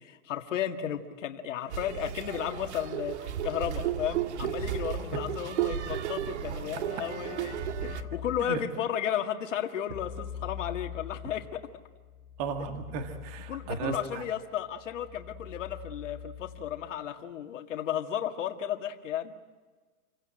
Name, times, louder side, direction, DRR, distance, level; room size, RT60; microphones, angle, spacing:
voice 1, 0.0-11.6 13.5-19.3, left 10 dB, 55° left, 5 dB, 1.9 m, -34 dB
sound 1, 1.7-8.0, right 10 dB, 50° right, 1.8 m, -33 dB
Keyboard (musical), 5.0-5.6 7.1-8.7 9.9-16.9, left 8 dB, 10° left, 3.5 m, -44 dB
voice 2, 12.4-14.2, right 5 dB, 25° right, 6 dB, 1.7 m, -35 dB
27.5 x 17.0 x 8.9 m, 1.4 s
hypercardioid pair, 165°, 43 cm